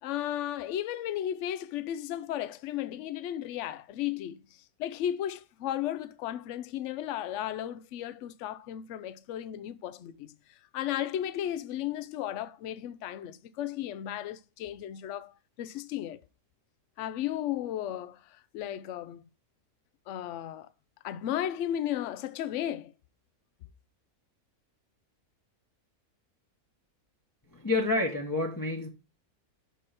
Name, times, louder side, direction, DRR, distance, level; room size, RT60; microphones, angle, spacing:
voice 1, 0.0-10.3 10.7-16.2 17.0-19.2 20.1-20.7 21.0-22.9, left 11 dB, 65° left, 0.8 m, -34 dB
voice 2, 27.5-28.9, left 2 dB, 15° left, 0.8 m, -28 dB
6.4 x 5.3 x 4.2 m
omnidirectional pair, 1.6 m